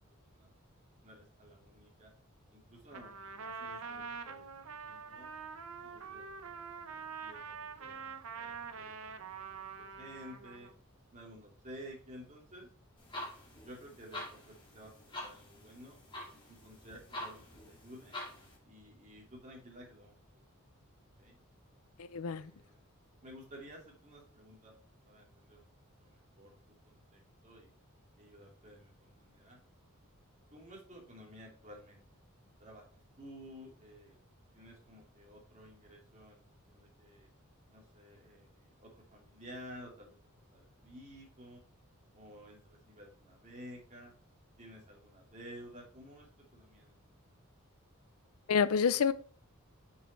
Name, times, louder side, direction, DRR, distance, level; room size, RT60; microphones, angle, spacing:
voice 1, 0.2-0.5 1.0-2.1 2.5-5.3 5.8-6.7 6.9-10.7 11.1-12.7 13.1-13.3 13.6-14.9 15.2-16.0 16.5-18.2 18.6-20.5 21.2-21.4 22.2-22.9 23.2-24.8 25.0-25.7 26.0-26.6 26.8-27.7 28.2-29.6 30.5-32.0 32.6-32.8 33.2-34.2 34.5-36.4 36.7-37.3 37.7-40.2 40.5-41.6 42.1-44.1 44.6-47.2, equal, 35° right, -1 dB, 2.5 m, -53 dB
Trumpet, 2.9-10.8, right 5 dB, 85° right, 0.8 m, -45 dB
sound 1, 13.0-18.6, left 1 dB, 20° left, 2.2 m, -46 dB
voice 2, 22.0-22.5 48.5-49.1, left 6 dB, 85° left, 16 dB, 0.5 m, -28 dB
6.3 x 5.8 x 4.3 m, 0.43 s
head